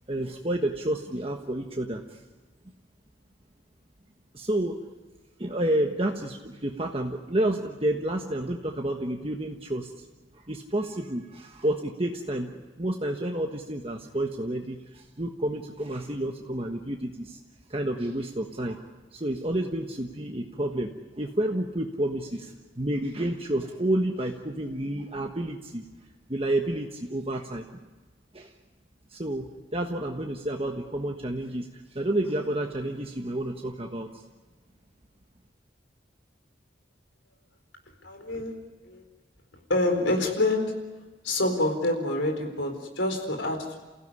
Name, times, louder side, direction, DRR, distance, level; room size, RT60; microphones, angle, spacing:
voice 1, 0.1-2.0 4.3-4.8 5.4-9.9 10.5-17.4 17.7-18.8 19.1-20.9 21.2-25.8 26.3-27.8 28.3-28.5 29.1-34.1, right 1 dB, 30° right, 2 dB, 1.4 m, -30 dB
voice 2, 38.0-38.5 38.8-39.0 39.7-40.7 41.2-43.8, left 2 dB, 85° left, 4 dB, 4.2 m, -27 dB
29.5 x 16.0 x 9.8 m, 1.3 s
head